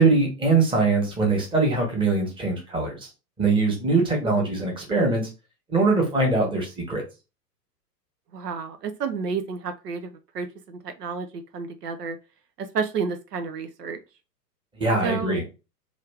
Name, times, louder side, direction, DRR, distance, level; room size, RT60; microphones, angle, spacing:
voice 1, 0.0-3.1 3.4-5.3 5.7-7.0 14.8-15.4, right 3 dB, 10° right, 0 dB, 1.1 m, -22 dB
voice 2, 8.3-12.2 12.6-14.0 15.0-15.3, right 5 dB, 75° right, 8 dB, 0.6 m, -31 dB
3.1 x 2.4 x 3.2 m, 0.29 s
figure-of-eight pair, 105°, 49 cm